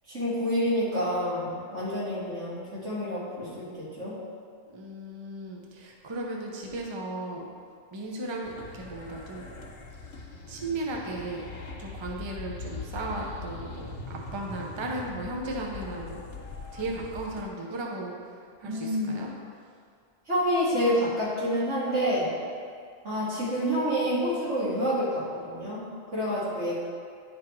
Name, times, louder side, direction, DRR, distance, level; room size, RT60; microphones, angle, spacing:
voice 1, 0.1-4.1 18.6-19.2 20.3-22.3 23.0-25.9 26.1-26.8, equal, 85° right, -9 dB, 2.6 m, -28 dB
voice 2, 4.7-7.5 7.9-9.5 10.5-11.4 11.8-16.2 16.7-19.3, right 2 dB, 30° right, -1 dB, 0.7 m, -36 dB
sound 1, 8.4-17.4, left 3 dB, 80° left, 1.2 m, -41 dB
10.5 x 3.7 x 4.5 m, 2.2 s
omnidirectional pair, 1.2 m